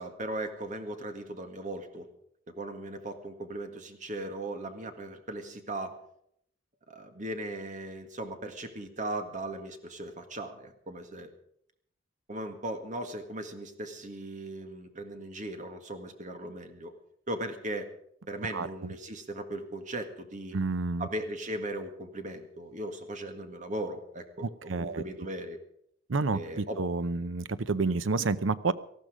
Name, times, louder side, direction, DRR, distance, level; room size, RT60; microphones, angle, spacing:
voice 1, 0.0-2.1 2.5-5.9 6.9-11.3 12.3-16.9 17.3-17.9 18.3-20.6 21.0-25.6 26.3-26.8, right 1 dB, 40° right, 6 dB, 1.9 m, -38 dB
voice 2, 20.5-21.1 24.4-25.0 26.1-28.7, right 3 dB, 75° right, 15 dB, 0.7 m, -29 dB
18.5 x 14.0 x 5.0 m, 0.70 s
head